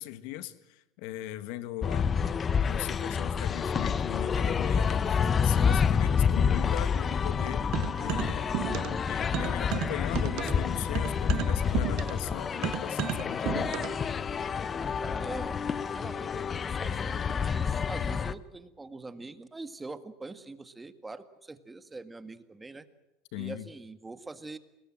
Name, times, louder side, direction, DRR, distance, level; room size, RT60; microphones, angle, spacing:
voice 1, 0.0-2.4 2.7-7.7 8.0-13.7 23.3-23.7, left 14 dB, 70° left, 12 dB, 1.6 m, -39 dB
sound 1, 1.8-18.3, left 6 dB, 30° left, 0.9 m, -28 dB
sound 2, 7.7-9.1 9.3-14.1, right 16 dB, 55° right, 1.0 m, -34 dB
voice 2, 14.8-22.8 23.3-24.6, right 3 dB, 15° right, 10 dB, 1.7 m, -44 dB
29.0 x 21.0 x 7.6 m, 0.96 s
supercardioid pair, 110°, 0 cm